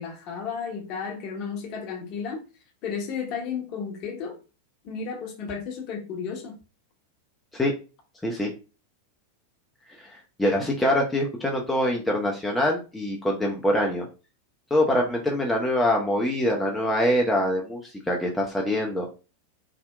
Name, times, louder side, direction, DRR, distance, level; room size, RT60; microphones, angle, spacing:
voice 1, 0.0-2.4 2.8-4.4 4.8-6.6, left 6 dB, 40° left, 0.7 m, -33 dB
voice 2, 10.0-14.1 14.7-19.1, left 1 dB, 5° left, 0.4 m, -24 dB
2.8 x 2.0 x 2.2 m
figure-of-eight pair, 90°, 0 cm